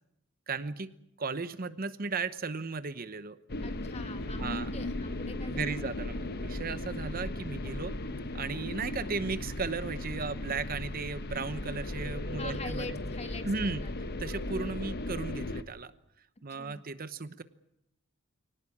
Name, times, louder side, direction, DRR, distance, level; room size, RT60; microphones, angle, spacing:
voice 1, 0.5-0.9 1.2-3.4 4.4-4.7 5.5-7.9 8.3-13.0 13.4-13.8 14.2-15.9 16.4-17.4, right 4 dB, 45° right, 13 dB, 0.9 m, -35 dB
sound 1, 3.5-15.6, left 1 dB, 50° left, 1.0 m, -36 dB
voice 2, 3.6-5.8 12.4-13.9 16.6-16.8, left 2 dB, 30° left, 8 dB, 1.6 m, -43 dB
24.5 x 18.0 x 8.6 m, 0.82 s
head